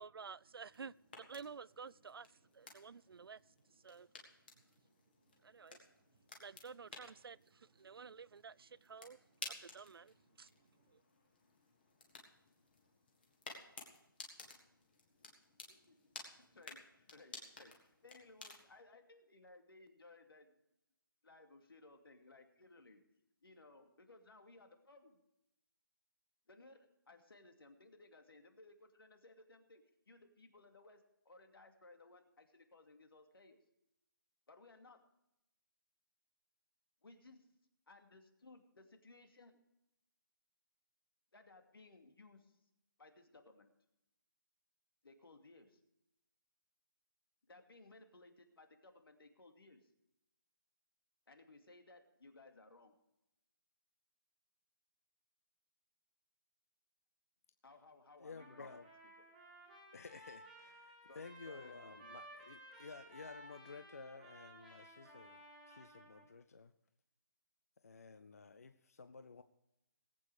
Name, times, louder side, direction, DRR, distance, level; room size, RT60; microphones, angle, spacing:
voice 1, 0.0-4.1 5.4-5.9 6.4-9.2 9.5-10.5 10.9-11.0, right 5 dB, 85° right, 0.4 m, -52 dB
sound 1, 0.7-18.8, left 3 dB, 25° left, 1.8 m, -56 dB
voice 2, 16.4-17.7 18.0-20.6 21.2-23.0 23.4-25.2 26.5-33.6 34.5-35.0 37.0-37.5 37.9-39.6 41.3-42.6 43.0-43.7 45.0-45.8 47.5-49.9 51.3-52.9 57.6-58.8 59.2-59.3 61.0-61.9, left 2 dB, 80° left, 2.5 m, -61 dB
voice 3, 58.2-58.9 59.9-65.4 65.7-66.7 67.8-69.4, left 4 dB, 40° left, 0.5 m, -53 dB
Trumpet, 58.3-66.3, right 1 dB, 5° right, 2.1 m, -57 dB
19.0 x 8.5 x 4.9 m
hypercardioid pair, 180°, 12 cm